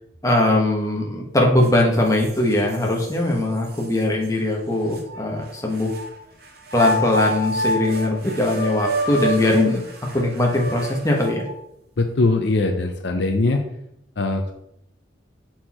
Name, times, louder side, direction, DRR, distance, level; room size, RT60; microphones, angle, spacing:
voice 1, 0.2-5.9 6.7-9.8 10.1-11.5, left 1 dB, 15° left, -1 dB, 1.1 m, -20 dB
sound 1, 1.6-1.7 2.2-3.1 3.8-3.9 4.9-6.1 6.7-11.6, right 1 dB, 50° right, 1.1 m, -28 dB
voice 2, 12.0-13.7 14.2-14.5, left 2 dB, 60° left, 5 dB, 0.6 m, -21 dB
6.5 x 4.5 x 4.3 m, 0.77 s
head